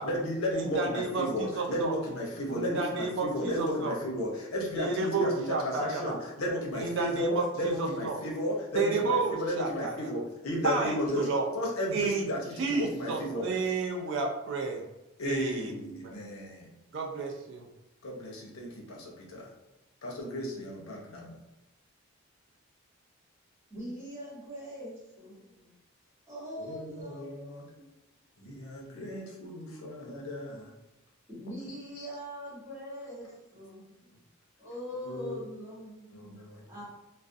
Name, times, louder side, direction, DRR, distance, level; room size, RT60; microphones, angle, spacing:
voice 1, 0.0-11.3 11.5-13.5 15.2-16.7 18.0-19.5 20.0-21.4 26.6-27.6 28.4-30.7 32.0-32.1 35.1-35.4 36.1-36.6, equal, 80° left, -2 dB, 0.7 m, -34 dB
voice 2, 0.5-1.9 2.5-3.9 4.7-6.2 6.7-8.2 8.7-10.1 10.6-11.5 11.9-12.3 12.6-14.8 15.2-15.7 16.0-16.2 16.9-17.6, right 4 dB, 60° right, 1 dB, 0.4 m, -31 dB
voice 3, 23.7-25.7 26.3-27.3 27.7-27.9 31.3-34.2 34.6-36.3 36.7-36.8, equal, 10° right, -9 dB, 1.1 m, -42 dB
2.4 x 2.0 x 2.5 m, 0.96 s
head